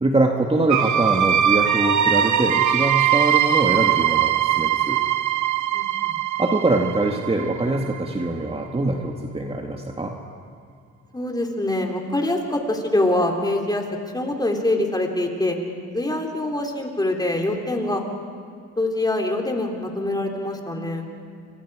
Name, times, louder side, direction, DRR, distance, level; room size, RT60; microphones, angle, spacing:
voice 1, 0.0-5.0 6.4-10.2, right 2 dB, 20° right, 2 dB, 1.9 m, -23 dB
sound 1, 0.7-8.3, right 10 dB, 75° right, 1.1 m, -21 dB
voice 2, 5.7-6.2 11.1-13.8 14.1-15.6 15.9-18.1 18.8-21.1, left 1 dB, 15° left, 1 dB, 3.8 m, -24 dB
29.5 x 24.5 x 5.0 m, 2.2 s
cardioid pair, 90°, 30 cm